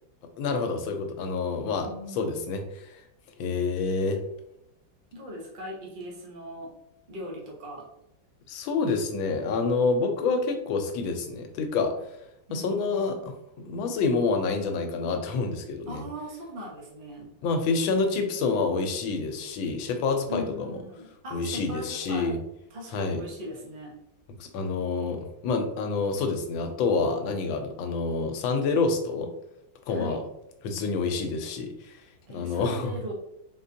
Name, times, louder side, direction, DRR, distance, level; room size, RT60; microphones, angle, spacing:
voice 1, 0.4-3.0 3.4-4.2 8.5-11.9 12.5-16.0 17.4-20.8 21.3-22.4 22.9-23.2 24.4-29.3 29.9-30.2 30.6-32.0 32.3-32.9, left 4 dB, 85° left, 5 dB, 1.4 m, -28 dB
voice 2, 1.8-2.3 5.1-6.7 7.1-7.8 12.5-13.3 15.9-17.3 20.3-22.4 22.7-24.0 29.9-30.2 32.3-33.1, equal, 35° right, -2 dB, 0.8 m, -40 dB
3.9 x 3.7 x 2.7 m, 0.83 s
omnidirectional pair, 2.1 m